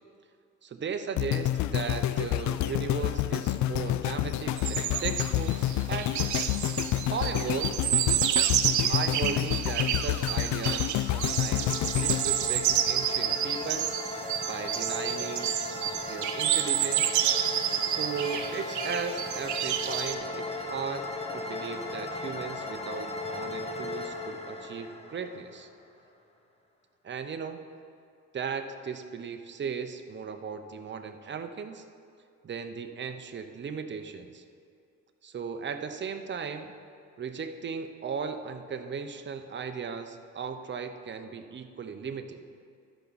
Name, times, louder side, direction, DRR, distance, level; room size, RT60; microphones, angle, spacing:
voice 1, 0.6-6.3 7.1-7.7 8.7-13.9 14.4-17.2 17.9-25.7 27.0-27.6 28.3-31.8 32.4-34.4 35.2-36.7 37.2-42.4, right 6 dB, 40° right, 7 dB, 0.8 m, -37 dB
sound 1, 1.2-13.4 13.9-14.0, left 13 dB, 70° left, 0.4 m, -29 dB
sound 2, 4.6-20.2, right 11 dB, 75° right, 0.6 m, -29 dB
sound 3, 11.0-25.8, left 2 dB, 20° left, 1.0 m, -37 dB
13.0 x 6.0 x 4.1 m, 2.4 s
cardioid pair, 90°, 30 cm